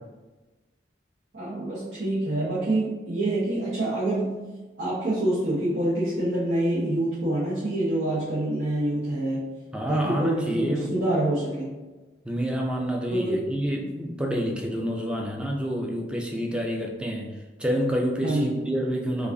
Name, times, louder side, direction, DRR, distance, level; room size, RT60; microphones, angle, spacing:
voice 1, 1.3-4.4 4.8-9.5 9.9-11.7 13.1-13.4 18.2-18.6, right 1 dB, 80° right, -10 dB, 1.0 m, -26 dB
voice 2, 9.7-11.0 12.2-19.3, equal, 5° right, 0 dB, 0.4 m, -28 dB
4.8 x 2.4 x 2.6 m, 1.2 s
head